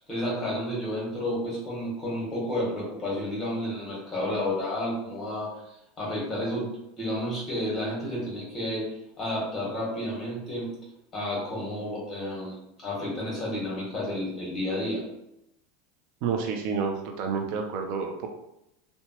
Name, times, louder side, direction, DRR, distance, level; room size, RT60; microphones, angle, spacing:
voice 1, 0.0-5.5 6.0-6.7 7.0-8.9 9.2-10.7 11.1-15.0, left 1 dB, 20° left, -4 dB, 1.4 m, -31 dB
voice 2, 16.2-18.3, right 5 dB, 60° right, 3 dB, 0.4 m, -29 dB
2.9 x 2.2 x 2.8 m, 0.84 s
supercardioid pair, 130°, 0 cm